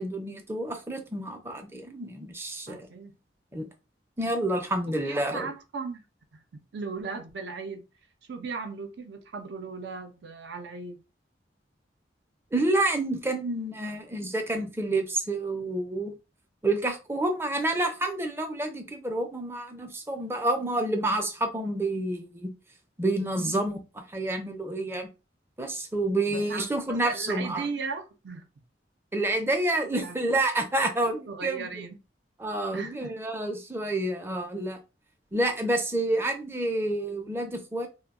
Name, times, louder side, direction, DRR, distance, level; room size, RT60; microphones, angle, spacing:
voice 1, 0.0-2.9 3.5-3.7 4.2-5.5 12.5-16.1 16.6-22.5 23.0-23.8 24.1-25.1 25.6-27.7 29.1-31.7 32.4-34.8 35.3-37.9, right 1 dB, 15° right, 0.5 m, -28 dB
voice 2, 2.7-3.1 5.0-6.0 6.3-7.8 8.3-11.0 23.4-23.7 26.3-28.5 30.0-30.2 31.3-32.0 32.7-33.1, right 4 dB, 70° right, 0.5 m, -37 dB
2.2 x 2.1 x 3.5 m
head